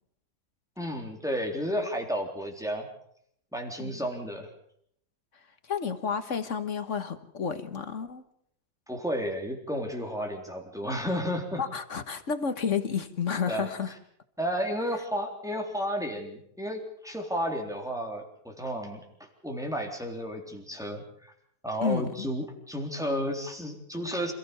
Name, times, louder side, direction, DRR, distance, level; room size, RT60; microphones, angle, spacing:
voice 1, 0.8-2.9 3.5-4.5 8.9-11.6 13.5-13.7 14.4-19.1 19.4-21.3 21.6-24.3, equal, ahead, 1 dB, 3.7 m, -32 dB
voice 2, 5.7-8.2 11.6-13.9 21.8-22.3, left 6 dB, 50° left, 10 dB, 1.6 m, -31 dB
27.5 x 15.0 x 7.0 m, 0.70 s
omnidirectional pair, 1.8 m